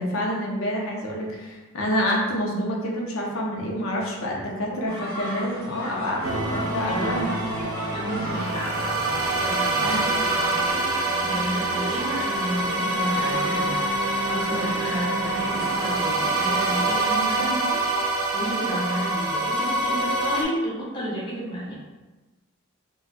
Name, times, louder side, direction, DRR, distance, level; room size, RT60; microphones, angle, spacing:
voice 1, 0.0-7.3 9.7-10.0 14.5-14.7, equal, 75° left, -1 dB, 0.6 m, -28 dB
voice 2, 4.7-5.0 6.9-7.3 7.9-9.1 9.4-10.4 10.7-21.8, equal, 20° left, -6 dB, 0.5 m, -32 dB
sound 1, 4.9-17.0, equal, 25° right, 0.8 m, -36 dB
sound 2, 6.2-20.4, right 2 dB, 90° right, 0.7 m, -25 dB
3.9 x 2.2 x 2.2 m, 1.2 s
head